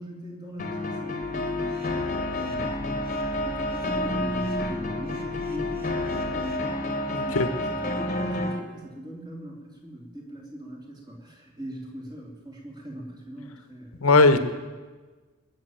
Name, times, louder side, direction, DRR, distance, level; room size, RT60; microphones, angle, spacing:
voice 1, 0.0-3.1 3.3-14.0, right 1 dB, 20° right, -1 dB, 3.2 m, -41 dB
sound 1, 0.6-8.6, left 1 dB, 35° left, 1.5 m, -29 dB
sound 2, 1.2-6.6, equal, 40° right, 2.2 m, -43 dB
voice 2, 7.1-7.5 14.0-14.4, left 3 dB, 75° left, 11 dB, 1.2 m, -18 dB
21.0 x 7.4 x 9.2 m, 1.3 s
head